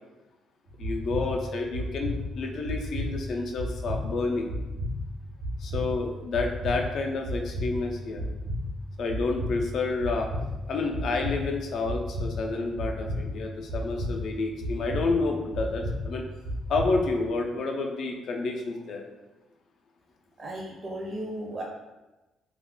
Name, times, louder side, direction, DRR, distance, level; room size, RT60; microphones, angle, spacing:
sound 1, 0.7-17.3, left 1 dB, 85° right, 0.7 m, -34 dB
voice 1, 0.8-4.5 5.6-8.2 9.0-10.3 10.7-16.2 16.7-19.0, left 3 dB, 70° left, 2 dB, 0.4 m, -29 dB
voice 2, 20.4-21.6, right 1 dB, 40° right, -1 dB, 0.5 m, -35 dB
2.3 x 2.1 x 3.6 m, 1.1 s
cardioid pair, 90°, 0 cm